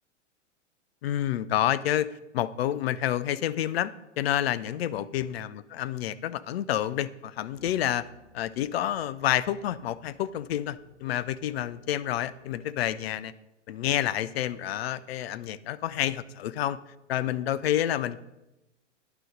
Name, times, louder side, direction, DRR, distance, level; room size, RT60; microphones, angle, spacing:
voice 1, 1.0-8.0 8.3-13.3 13.7-16.8 17.1-18.2, left 12 dB, 55° left, 16 dB, 0.4 m, -29 dB
sound 1, 7.5-12.7, left 1 dB, 80° left, 1.9 m, -59 dB
10.0 x 3.8 x 5.3 m, 0.97 s
figure-of-eight pair, 100°, 37 cm